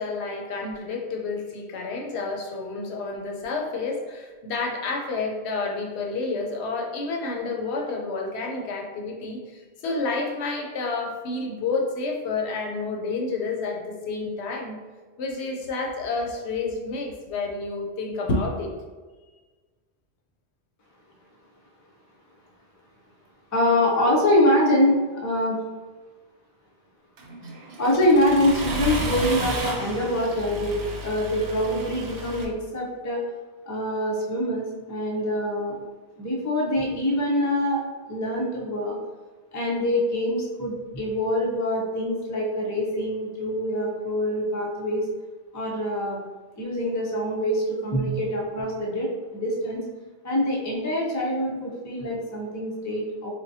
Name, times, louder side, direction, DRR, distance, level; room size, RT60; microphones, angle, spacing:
voice 1, 0.0-14.8 15.2-18.7, left 3 dB, 75° left, 1 dB, 0.8 m, -29 dB
voice 2, 23.5-25.6 27.8-33.2 33.7-35.8 36.2-37.8 38.1-39.0 39.5-45.0 45.5-46.2 46.6-49.8 50.2-53.3, left 1 dB, 25° left, -2 dB, 0.4 m, -24 dB
Accelerating revving vroom, 27.2-32.4, right 1 dB, 70° right, 0.9 m, -32 dB
4.2 x 2.2 x 2.7 m, 1.3 s
omnidirectional pair, 1.2 m